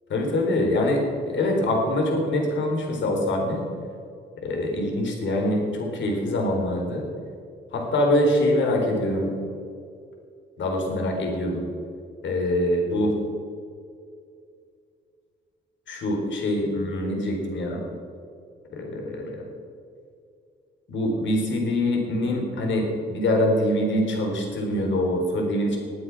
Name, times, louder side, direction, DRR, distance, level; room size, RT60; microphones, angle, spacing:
voice 1, 0.1-3.7 4.4-7.1 7.7-9.3 10.6-11.7 12.2-13.2 15.9-17.8 18.7-19.4 20.9-25.8, left 1 dB, 70° left, 1 dB, 3.9 m, -24 dB
20.5 x 7.9 x 6.1 m, 2.4 s
cardioid pair, 90°, 20 cm